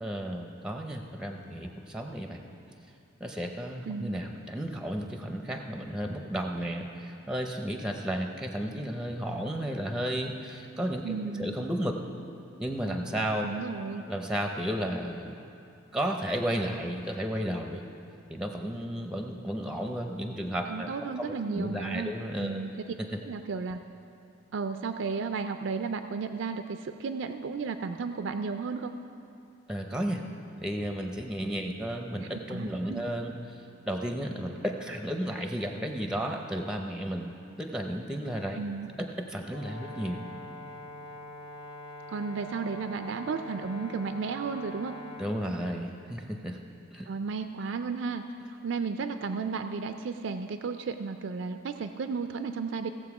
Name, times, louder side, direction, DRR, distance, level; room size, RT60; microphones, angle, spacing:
voice 1, 0.0-2.4 3.2-12.0 12.6-13.5 14.1-15.4 15.9-17.9 18.3-20.9 21.2-22.6 29.7-30.2 30.6-38.6 39.0-40.2 45.2-46.6 46.9-47.1, equal, 5° right, 3 dB, 0.5 m, -33 dB
voice 2, 3.9-4.2 11.0-11.5 13.4-14.1 20.7-22.1 22.4-22.9 23.3-23.8 24.5-28.9 32.3-33.0 38.6-38.9 42.1-44.9 47.1-48.2 48.6-52.9, right 5 dB, 60° right, 8 dB, 0.4 m, -33 dB
Brass instrument, 39.5-45.3, left 2 dB, 60° left, 1.0 m, -44 dB
16.5 x 7.4 x 4.8 m, 2.6 s
head